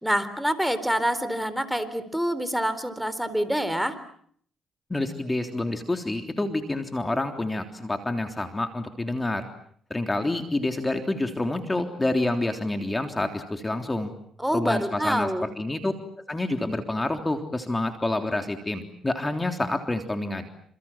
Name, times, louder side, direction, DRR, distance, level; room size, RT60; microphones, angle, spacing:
voice 1, 0.0-4.0 14.4-15.5, equal, ahead, 12 dB, 4.0 m, -26 dB
voice 2, 4.9-9.4 9.9-14.1 14.5-15.3 15.6-15.9 16.3-20.5, left 2 dB, 15° left, 5 dB, 3.4 m, -28 dB
28.5 x 28.0 x 7.3 m, 0.62 s
cardioid pair, 80°, 0 cm